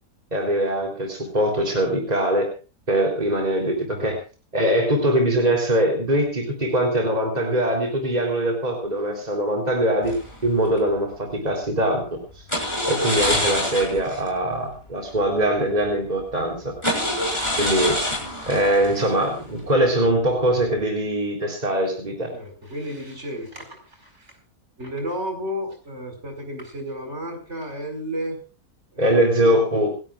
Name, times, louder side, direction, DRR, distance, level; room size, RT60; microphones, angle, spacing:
voice 1, 0.3-2.5 2.9-4.2 4.5-10.2 10.4-12.2 12.9-16.7 17.6-18.0 18.5-22.3 29.0-29.9, right 1 dB, 30° right, 1 dB, 3.9 m, -22 dB
sound 1, 10.0-10.8 12.5-14.3 14.5-14.7 15.1-15.2 16.0-16.1 16.8-19.9 20.3-20.6, left 1 dB, 20° left, 6.7 m, -26 dB
voice 2, 22.3-24.4 24.8-28.4 28.9-29.6, equal, 50° right, 4 dB, 5.2 m, -33 dB
28.0 x 12.5 x 2.5 m, 0.34 s
omnidirectional pair, 1.5 m